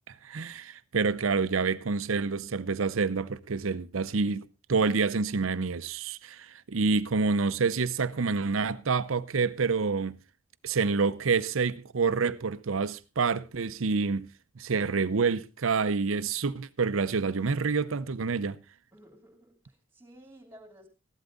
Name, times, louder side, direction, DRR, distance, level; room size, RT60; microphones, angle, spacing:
voice 1, 0.1-10.2 10.6-14.3 14.6-18.6, right 4 dB, 90° right, 0.7 m, -28 dB
voice 2, 18.9-20.9, equal, 10° right, 2.9 m, -53 dB
14.5 x 11.5 x 3.8 m
head